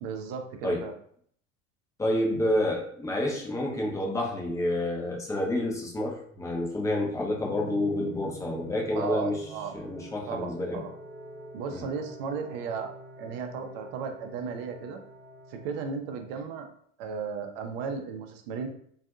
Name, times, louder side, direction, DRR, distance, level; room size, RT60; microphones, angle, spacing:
voice 1, 0.0-0.9 9.0-9.7 10.3-10.9 11.5-12.9 13.2-15.0 15.5-16.7 17.0-18.7, right 6 dB, 50° right, 5 dB, 0.5 m, -35 dB
voice 2, 2.0-9.4 9.7-10.8 11.2-11.8, left 1 dB, 10° left, -2 dB, 0.5 m, -29 dB
sound 1, 7.3-15.8, right 1 dB, 15° right, 0.9 m, -48 dB
2.5 x 2.3 x 2.4 m, 0.63 s
figure-of-eight pair, 75°, 40 cm